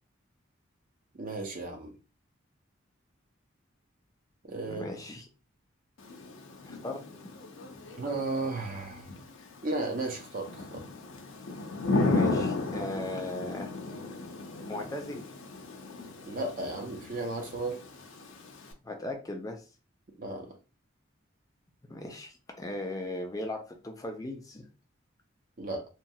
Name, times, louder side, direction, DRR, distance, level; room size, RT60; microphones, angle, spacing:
voice 1, 1.1-1.9 4.4-4.8 8.0-9.1 9.6-10.8 16.2-17.8 20.2-20.5 25.6-25.9, right 2 dB, 45° right, 0.6 m, -34 dB
voice 2, 4.7-5.3 6.6-7.0 12.0-13.7 14.7-15.3 18.8-19.7 21.9-24.7, left 1 dB, 15° left, 0.4 m, -37 dB
Thunder / Rain, 6.0-18.7, left 3 dB, 75° left, 0.6 m, -35 dB
2.9 x 2.3 x 2.6 m
head